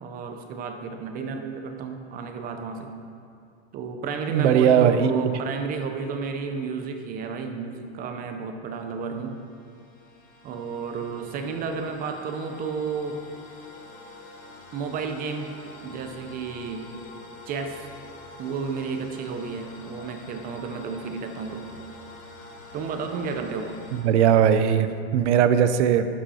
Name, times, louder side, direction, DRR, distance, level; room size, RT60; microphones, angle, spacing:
voice 1, 0.0-2.9 3.7-9.3 10.4-13.2 14.7-15.5 15.8-16.9 17.5-17.8 18.4-21.7 22.7-23.8, right 5 dB, 25° right, 5 dB, 0.6 m, -32 dB
voice 2, 4.3-5.3 23.9-26.1, right 8 dB, 90° right, 11 dB, 0.6 m, -19 dB
sound 1, 8.8-24.0, left 3 dB, 50° left, 1.7 m, -46 dB
11.0 x 5.3 x 4.3 m, 2.4 s
supercardioid pair, 150°, 34 cm